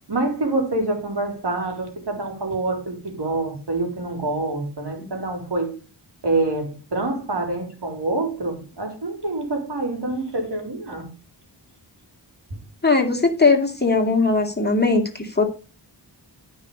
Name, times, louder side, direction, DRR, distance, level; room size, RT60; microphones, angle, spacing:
voice 1, 0.1-5.7 6.2-11.1 12.5-12.6, right 2 dB, 65° right, 2 dB, 3.8 m, -26 dB
voice 2, 12.8-15.4, left 3 dB, 25° left, 3 dB, 2.3 m, -19 dB
12.5 x 5.6 x 5.4 m, 0.35 s
wide cardioid pair, 90°, 43 cm